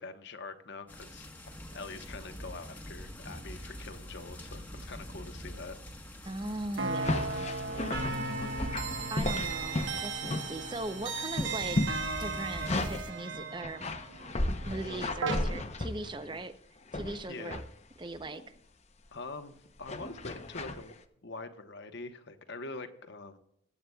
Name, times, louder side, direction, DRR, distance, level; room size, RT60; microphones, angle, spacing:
voice 1, 0.0-5.8 17.3-17.6 19.1-20.9 21.2-23.4, left 3 dB, 55° left, 8 dB, 1.0 m, -44 dB
sound 1, 0.9-13.0, equal, 10° left, 1.2 m, -45 dB
voice 2, 6.2-8.2 9.1-11.8 12.2-13.9 14.7-16.5 16.9-17.6 18.0-18.4, right 2 dB, 25° right, 10 dB, 0.6 m, -39 dB
sound 2, 6.8-15.4, right 4 dB, 65° right, 1.2 m, -36 dB
sound 3, 7.0-10.8 11.1-13.1 13.6-16.4 16.9-17.7 18.1-18.4 19.8-20.8, left 2 dB, 35° left, 0.8 m, -34 dB
20.5 x 8.5 x 2.3 m, 0.72 s
head